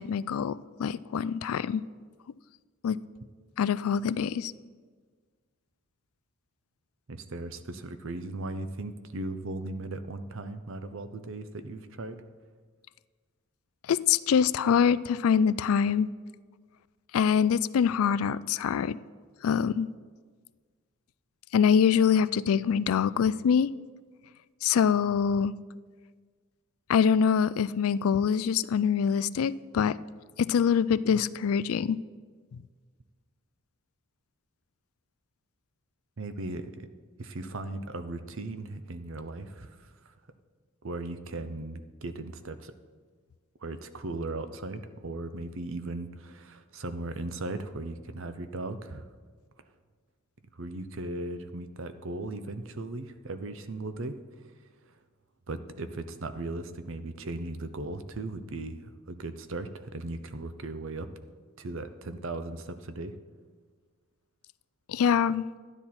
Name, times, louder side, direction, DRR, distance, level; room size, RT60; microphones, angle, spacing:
voice 1, 0.0-1.8 2.8-3.0 3.6-4.5 13.9-16.1 17.1-19.0 19.4-19.9 21.5-23.7 24.6-25.5 26.9-30.0 30.4-32.0 64.9-65.5, left 7 dB, 75° left, 18 dB, 0.3 m, -24 dB
voice 2, 7.1-12.2 36.2-36.9 37.2-40.1 40.8-42.7 43.6-49.1 50.5-54.2 55.5-61.1 61.6-63.2, right 2 dB, 60° right, 10 dB, 0.7 m, -37 dB
12.0 x 9.8 x 4.3 m, 1.5 s
head